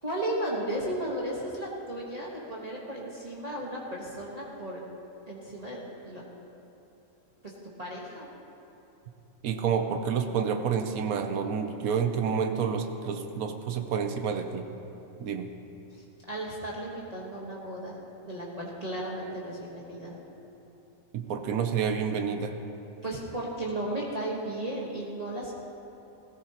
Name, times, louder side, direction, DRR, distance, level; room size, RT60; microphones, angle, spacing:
voice 1, 0.0-4.8 5.3-6.2 7.4-7.5 7.8-8.3 16.3-18.0 18.2-20.1 23.0-25.5, right 1 dB, 30° right, -5 dB, 1.3 m, -35 dB
voice 2, 9.4-14.7 15.2-15.5 21.1-22.5, right 6 dB, 80° right, 7 dB, 1.1 m, -29 dB
16.5 x 14.5 x 2.9 m, 2.9 s
omnidirectional pair, 1.5 m